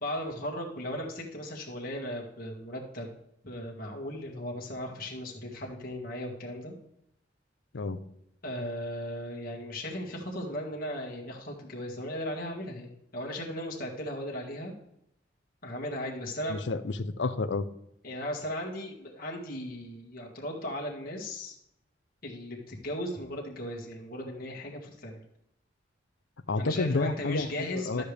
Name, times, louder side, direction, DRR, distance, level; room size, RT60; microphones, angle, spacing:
voice 1, 0.0-3.1 3.4-6.7 8.4-14.7 15.6-16.6 18.0-21.6 22.2-25.2 26.6-28.0, left 1 dB, 50° left, -2 dB, 1.8 m, -37 dB
voice 2, 16.5-17.6 26.5-28.0, left 3 dB, 75° left, 12 dB, 0.6 m, -30 dB
12.5 x 6.6 x 3.4 m, 0.78 s
head